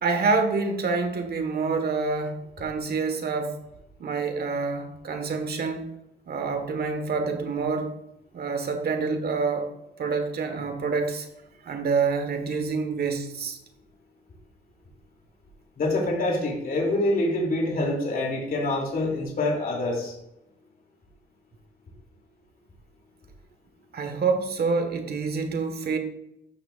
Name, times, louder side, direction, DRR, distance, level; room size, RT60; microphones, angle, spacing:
voice 1, 0.0-3.6 4.0-5.9 6.3-7.9 8.3-9.7 10.0-11.3 11.6-13.6 23.9-26.0, right 4 dB, 50° right, 1.6 m, -27 dB
voice 2, 15.8-20.1, left 2 dB, 45° left, 3.1 m, -26 dB
14.0 x 6.1 x 2.6 m
cardioid pair, 90°, 20 cm